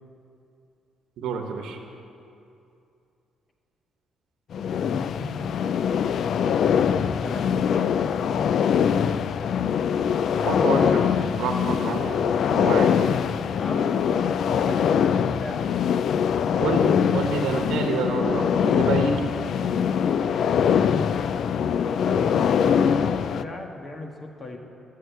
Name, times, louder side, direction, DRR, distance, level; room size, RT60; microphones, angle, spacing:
voice 1, 1.2-1.8 10.5-11.0 11.4-12.2 12.5-12.9 16.6-19.2, right 4 dB, 80° right, 3 dB, 1.1 m, -27 dB
sound 1, 4.5-23.4, left 7 dB, 65° left, 0.3 m, -23 dB
voice 2, 4.9-5.7 6.8-8.9 13.6-15.7 19.5-19.9 21.6-24.6, left 2 dB, 35° left, 3 dB, 1.4 m, -37 dB
12.0 x 6.5 x 7.9 m, 2.6 s
cardioid pair, 90°, 0 cm